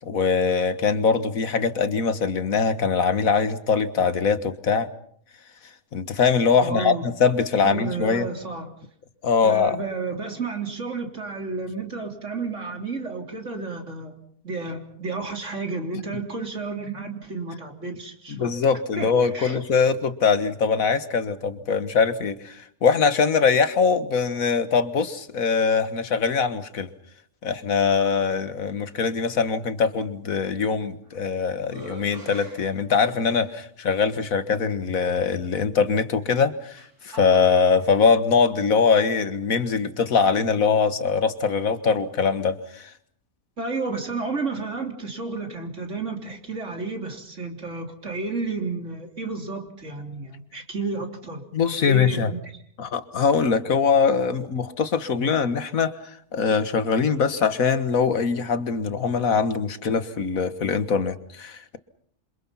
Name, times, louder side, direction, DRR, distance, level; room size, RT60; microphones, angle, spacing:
voice 1, 0.0-4.9 5.9-8.3 9.2-9.8 18.3-26.9 27.4-42.9 51.5-52.3 52.8-61.8, left 5 dB, 65° left, 12 dB, 1.9 m, -22 dB
voice 2, 6.6-7.1 7.6-8.7 9.4-14.2 14.4-18.5 19.0-19.6 43.6-51.5 51.7-52.4, right 3 dB, 50° right, 4 dB, 4.0 m, -31 dB
sound 1, 30.8-31.3 31.6-33.5 34.3-34.4 36.2-37.9, right 1 dB, 80° right, 5.2 m, -44 dB
27.0 x 27.0 x 5.7 m, 0.64 s
omnidirectional pair, 1.6 m